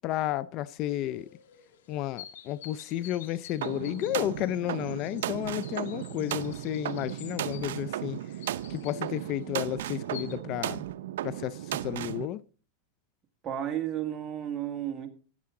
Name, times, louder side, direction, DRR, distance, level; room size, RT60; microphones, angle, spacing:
voice 1, 0.0-1.3 1.9-8.2 8.7-10.8 11.2-12.4, left 13 dB, 40° left, 0.4 m, -32 dB
sound 1, 0.8-10.3, left 10 dB, 85° left, 2.0 m, -50 dB
sound 2, 3.6-12.3, right 12 dB, 80° right, 0.5 m, -35 dB
voice 2, 13.4-15.1, right 10 dB, 25° right, 1.9 m, -32 dB
13.5 x 9.6 x 3.7 m
supercardioid pair, 140°, 0 cm